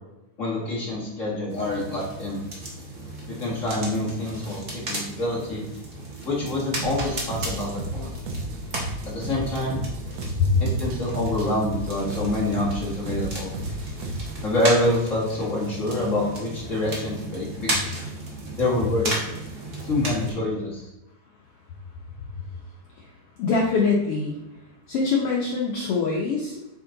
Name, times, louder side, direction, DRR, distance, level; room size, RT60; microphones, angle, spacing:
voice 1, 0.4-2.4 3.3-5.6 6.2-8.1 9.1-9.8 10.6-13.5 14.4-18.0 18.5-19.2 19.8-20.8, left 1 dB, 30° left, -5 dB, 1.5 m, -26 dB
sound 1, 1.5-20.3, right 1 dB, 45° right, 0.9 m, -35 dB
sound 2, 6.8-14.5, right 1 dB, 70° right, 1.7 m, -33 dB
voice 2, 23.4-24.4 24.9-26.6, left 4 dB, 85° left, -1 dB, 1.2 m, -23 dB
8.5 x 3.7 x 3.8 m, 0.98 s
omnidirectional pair, 3.8 m